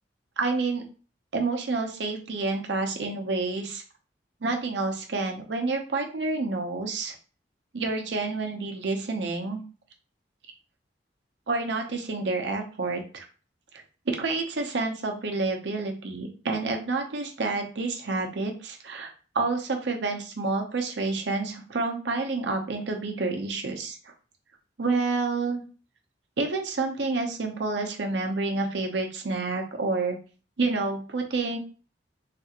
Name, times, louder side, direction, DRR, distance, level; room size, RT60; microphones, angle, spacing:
voice 1, 0.4-0.8 1.3-3.8 4.4-7.1 7.7-9.6 11.5-13.2 14.1-19.1 19.3-24.0 24.8-25.6 26.4-30.2 30.6-31.6, right 3 dB, 70° right, 3 dB, 0.6 m, -29 dB
3.3 x 2.9 x 2.4 m, 0.37 s
head